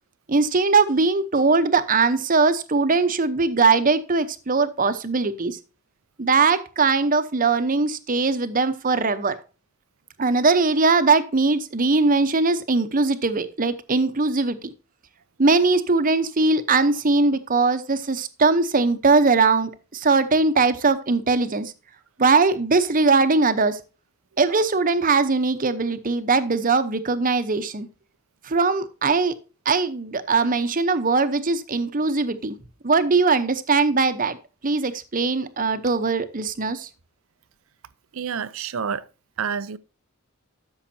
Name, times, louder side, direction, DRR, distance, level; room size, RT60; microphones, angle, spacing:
voice 1, 0.3-5.6 6.2-9.4 10.2-14.7 15.4-21.7 22.2-23.8 24.4-27.9 28.4-29.4 29.6-32.5 32.8-34.4 34.6-36.9, right 4 dB, 40° right, 0.9 m, -20 dB
voice 2, 38.1-39.0 39.4-39.8, right 6 dB, 75° right, 0.6 m, -28 dB
13.0 x 6.4 x 2.8 m
head